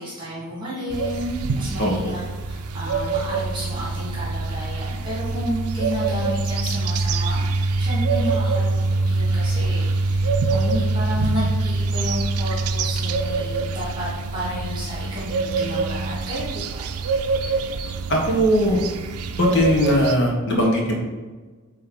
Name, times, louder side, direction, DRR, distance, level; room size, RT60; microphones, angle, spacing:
voice 1, 0.0-7.4 7.8-16.9 17.7-17.8, equal, 20° right, -7 dB, 1.8 m, -31 dB
sound 1, 0.9-20.2, right 3 dB, 85° right, 0.5 m, -24 dB
voice 2, 1.8-2.1 18.1-18.8 19.4-21.0, equal, 55° left, -1 dB, 1.4 m, -19 dB
8.6 x 3.3 x 3.9 m, 1.3 s
head